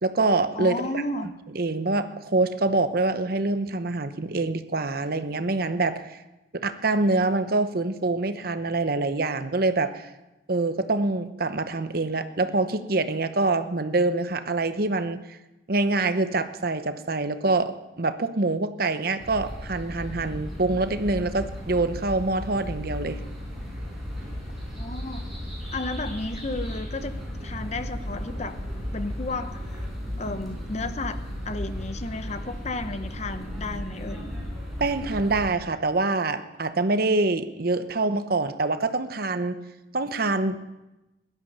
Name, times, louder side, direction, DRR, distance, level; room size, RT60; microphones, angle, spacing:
voice 1, 0.0-1.0 1.5-6.2 6.5-10.1 10.5-15.2 15.7-23.2 34.8-39.6 39.9-40.6, right 2 dB, 50° right, 10 dB, 0.9 m, -25 dB
voice 2, 0.6-1.3 24.7-25.3 25.7-28.6 28.9-29.8 30.2-34.2, left 2 dB, 35° left, 10 dB, 0.8 m, -33 dB
sound 1, 19.2-35.5, equal, ahead, 4.9 m, -35 dB
16.5 x 12.0 x 5.4 m, 1.0 s
head